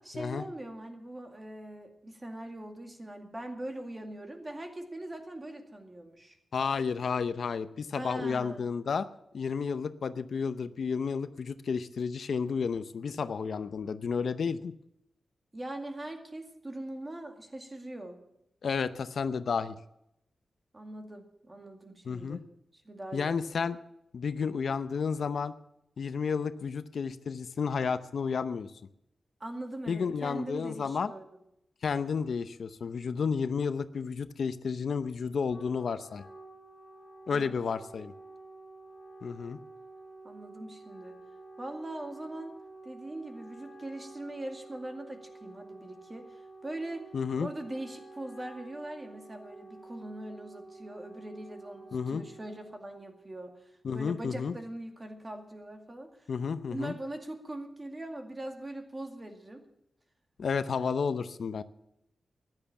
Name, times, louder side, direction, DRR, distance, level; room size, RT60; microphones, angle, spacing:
voice 1, 0.0-6.4 8.0-8.7 15.5-18.2 20.7-22.4 22.7-23.5 29.4-31.4 37.3-37.5 40.2-41.1 41.6-42.6 42.8-47.1 47.3-56.3 56.7-59.6, right 1 dB, 20° right, 4 dB, 2.2 m, -41 dB
voice 2, 6.5-9.1 9.3-14.7 18.6-19.8 22.0-22.4 23.1-23.8 24.1-25.5 26.0-28.7 29.9-31.1 31.8-36.2 37.3-38.1 39.2-39.6 47.1-47.5 51.9-52.2 53.8-54.5 56.3-56.9 60.4-61.6, left 5 dB, 65° left, 12 dB, 0.6 m, -31 dB
Wind instrument woodwind instrument, 35.3-52.7, right 2 dB, 25° left, 5.6 m, -50 dB
14.5 x 11.0 x 7.1 m, 0.80 s
wide cardioid pair, 125°, 0 cm